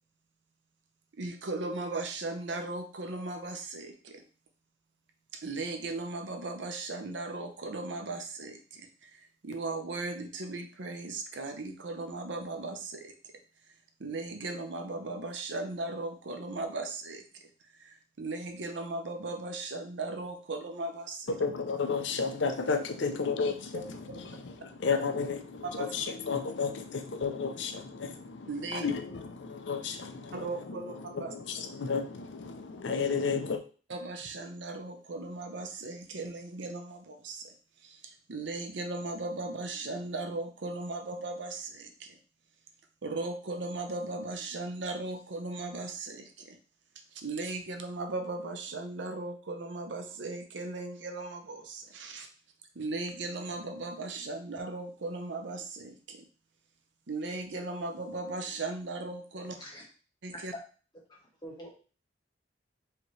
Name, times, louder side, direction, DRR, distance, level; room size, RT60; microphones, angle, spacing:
voice 1, 1.2-4.2 5.3-13.1 14.0-17.4 17.8-21.3 23.7-23.8 25.6-25.9 28.5-28.9 30.3-31.3 33.9-37.5 37.8-42.2 43.0-46.6 47.1-52.3 52.7-56.3 57.1-59.6 60.2-60.5, right 2 dB, 75° right, 6 dB, 0.7 m, -37 dB
voice 2, 21.3-33.6, left 5 dB, 80° left, 6 dB, 0.6 m, -33 dB
voice 3, 59.4-59.8 60.3-60.4 61.1-61.7, equal, 25° left, -4 dB, 1.4 m, -46 dB
4.8 x 2.9 x 3.2 m, 0.37 s
head